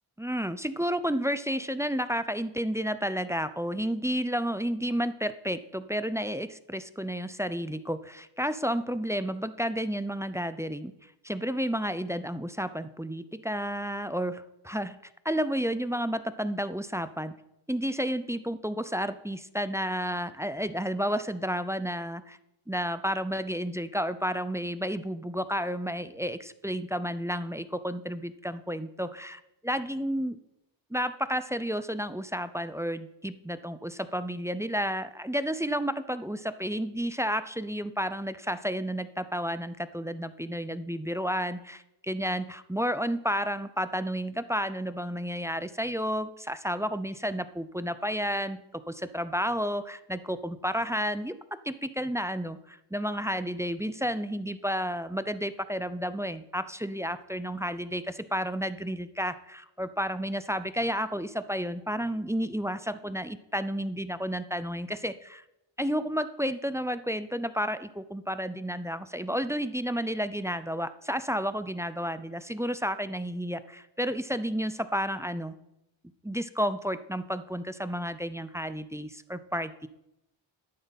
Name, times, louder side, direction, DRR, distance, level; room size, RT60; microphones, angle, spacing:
voice 1, 0.2-10.9 11.2-15.0 15.2-17.3 17.7-22.4 22.7-30.4 30.9-51.3 51.6-65.4 65.8-75.5 76.2-79.9, equal, 5° right, 13 dB, 0.5 m, -31 dB
11.5 x 9.2 x 4.1 m, 0.88 s
cardioid pair, 60°, 47 cm